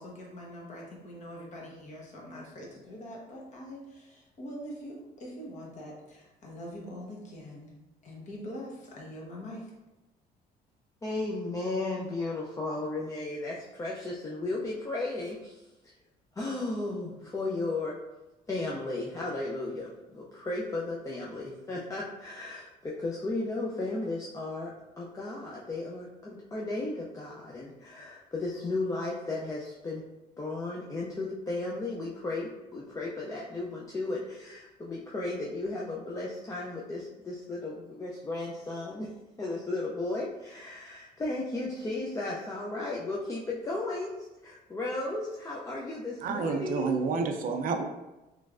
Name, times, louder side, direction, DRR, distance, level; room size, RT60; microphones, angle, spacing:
voice 1, 0.0-7.7 8.0-9.6, equal, 45° left, -2 dB, 1.0 m, -43 dB
voice 2, 11.0-15.9 16.4-18.0 18.5-30.0 30.4-39.1 39.4-47.0, left 2 dB, 20° left, -4 dB, 0.4 m, -35 dB
voice 3, 46.2-47.8, right 5 dB, 55° right, 5 dB, 0.4 m, -29 dB
3.1 x 3.1 x 2.4 m, 1.0 s
cardioid pair, 110°, 17 cm